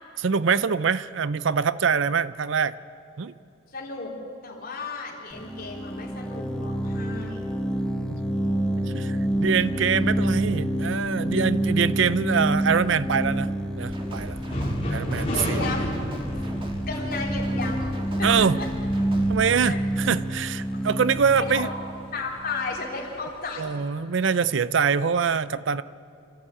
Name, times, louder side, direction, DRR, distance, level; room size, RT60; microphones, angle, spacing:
voice 1, 0.2-2.7 3.2-3.3 8.9-13.5 13.8-14.4 14.9-15.6 18.2-18.6 19.3-21.7 23.6-25.8, right 6 dB, 65° right, 16 dB, 0.5 m, -24 dB
voice 2, 3.7-4.1 4.4-7.5 15.3-15.9 16.9-18.7 19.6-19.8 21.4-21.7 22.1-24.1, left 3 dB, 45° left, -2 dB, 4.0 m, -34 dB
sound 1, 5.3-22.9, right 1 dB, 5° left, 0.8 m, -28 dB
sound 2, 13.9-19.6, equal, 25° right, 1.7 m, -38 dB
sound 3, 14.0-23.5, left 1 dB, 30° left, 4.0 m, -34 dB
27.5 x 14.0 x 8.6 m, 2.7 s
head